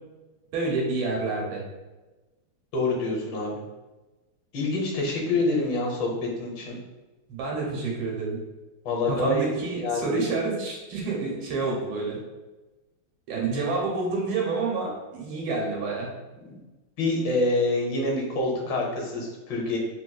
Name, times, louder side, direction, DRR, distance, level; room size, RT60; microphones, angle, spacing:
voice 1, 0.5-1.6 7.3-8.4 9.1-12.2 13.3-16.1, right 3 dB, 90° right, -2 dB, 1.7 m, -28 dB
voice 2, 2.7-3.6 4.5-6.1 6.4-6.8 8.8-9.5 9.8-10.0 16.5-16.6 17.0-19.8, left 2 dB, 70° left, -1 dB, 1.5 m, -26 dB
3.5 x 2.9 x 2.2 m, 1.1 s
omnidirectional pair, 2.2 m